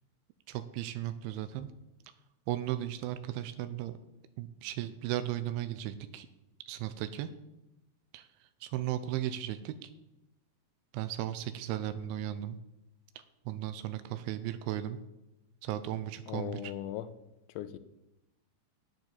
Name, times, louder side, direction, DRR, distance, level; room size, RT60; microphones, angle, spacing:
voice 1, 0.5-1.7 2.5-4.0 4.4-6.3 6.7-7.3 8.1-8.3 8.6-9.9 10.9-12.6 13.5-15.0 15.6-16.6, right 12 dB, 85° right, 11 dB, 3.0 m, -36 dB
voice 2, 16.3-17.1 17.5-17.8, left 12 dB, 80° left, 12 dB, 3.1 m, -38 dB
9.8 x 9.1 x 7.4 m, 0.91 s
omnidirectional pair, 5.4 m